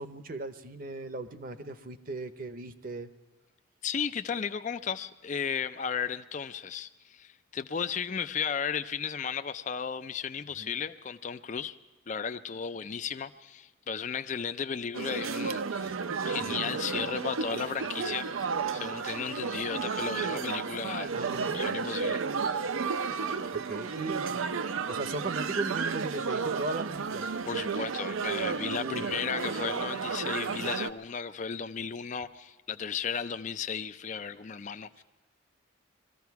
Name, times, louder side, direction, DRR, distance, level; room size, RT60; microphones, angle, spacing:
voice 1, 0.0-3.1 10.6-10.7 16.4-16.6 21.1-21.6 23.5-24.4 24.9-27.3 28.7-29.1, right 2 dB, 45° right, 0.8 m, -37 dB
voice 2, 3.8-11.7 12.1-18.3 18.7-21.1 21.5-22.2 27.5-35.0, left 6 dB, 35° left, 0.4 m, -34 dB
sound 1, 14.9-30.9, right 5 dB, 80° right, 0.6 m, -32 dB
21.0 x 14.5 x 4.7 m
head